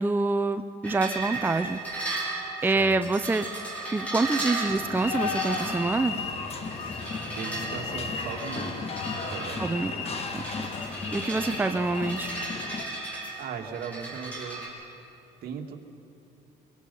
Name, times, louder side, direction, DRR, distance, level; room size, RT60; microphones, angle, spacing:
voice 1, 0.0-1.8 2.6-3.5 3.9-6.1 9.6-9.9 10.3-10.4 10.8-12.3, right 3 dB, 10° right, 8 dB, 0.6 m, -26 dB
sound 1, 0.8-14.7, right 2 dB, 10° left, 5.8 m, -36 dB
voice 2, 2.6-3.0 7.3-9.7 13.4-14.6 15.4-15.8, right 6 dB, 65° right, 2 dB, 2.1 m, -38 dB
sound 2, 4.7-12.8, left 5 dB, 35° left, 1.6 m, -34 dB
sound 3, 5.0-11.0, left 5 dB, 60° left, 1.6 m, -45 dB
24.0 x 23.0 x 5.5 m, 2.8 s
cardioid pair, 110°, 17 cm